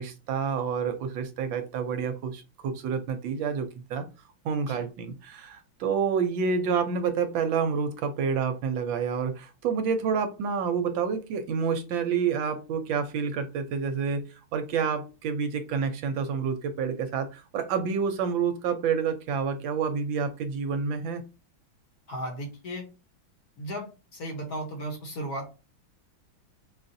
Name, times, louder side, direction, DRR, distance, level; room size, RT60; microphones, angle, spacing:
voice 1, 0.0-4.1 4.4-14.2 14.5-21.2, right 6 dB, 75° right, 7 dB, 1.3 m, -28 dB
voice 2, 22.1-22.9 23.6-25.5, right 1 dB, 55° left, 2 dB, 1.2 m, -35 dB
5.4 x 2.4 x 2.5 m, 0.30 s
omnidirectional pair, 2.2 m